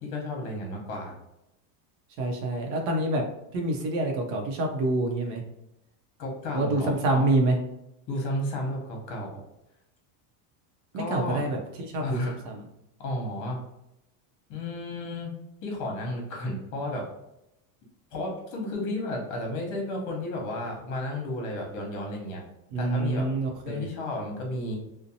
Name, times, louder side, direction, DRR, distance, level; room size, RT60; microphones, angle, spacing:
voice 1, 0.0-1.2 6.2-7.2 8.1-9.3 10.9-11.4 12.0-12.4 13.0-13.6 14.5-15.3 15.6-17.0 18.1-22.4 22.8-23.3 23.7-24.8, left 1 dB, 40° left, 0 dB, 0.9 m, -32 dB
voice 2, 2.2-3.2 3.5-5.4 6.5-7.6 10.9-12.7 22.7-23.9, right 2 dB, 75° right, 2 dB, 0.6 m, -27 dB
2.6 x 2.1 x 2.7 m, 0.86 s
cardioid pair, 160°, 44 cm